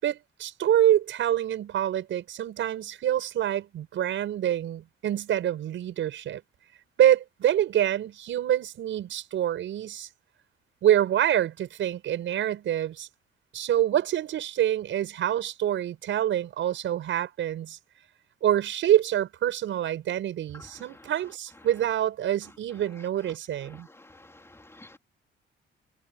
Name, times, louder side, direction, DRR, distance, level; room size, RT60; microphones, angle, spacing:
voice 1, 0.0-6.4 7.0-10.1 10.8-13.1 13.5-17.8 18.4-23.9, right 11 dB, 75° right, 6.5 m, -26 dB
voice 2, 23.7-25.0, left 2 dB, 15° left, 3.7 m, -51 dB
cardioid pair, 90°, 20 cm